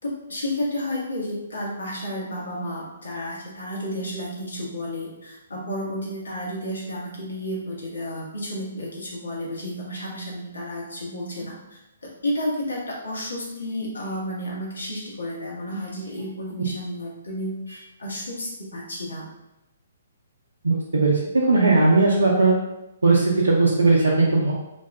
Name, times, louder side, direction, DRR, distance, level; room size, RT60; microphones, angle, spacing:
voice 1, 0.0-11.8 12.2-19.2, left 1 dB, 75° left, -4 dB, 1.1 m, -31 dB
voice 2, 20.6-22.6 23.0-24.5, right 3 dB, 75° right, -5 dB, 0.5 m, -18 dB
2.6 x 2.3 x 3.3 m, 0.93 s
figure-of-eight pair, 130°, 0 cm